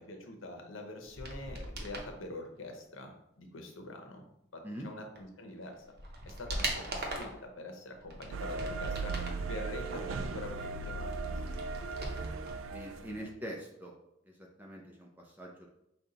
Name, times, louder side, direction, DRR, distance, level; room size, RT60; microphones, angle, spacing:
voice 1, 0.0-4.3 4.5-5.8 6.2-9.1 9.5-11.1 11.5-11.6, left 2 dB, 80° left, 4 dB, 0.8 m, -45 dB
sound 1, 1.1-2.1 5.2-5.3 5.7-7.4 8.0-9.5 9.9-12.5 12.8-12.9, right 1 dB, 55° right, 0.8 m, -40 dB
sound 2, 8.3-13.3, right 4 dB, 90° right, 0.3 m, -38 dB
voice 2, 12.7-13.9 14.2-15.7, equal, 10° right, -1 dB, 0.5 m, -44 dB
5.2 x 2.3 x 3.8 m, 0.81 s
head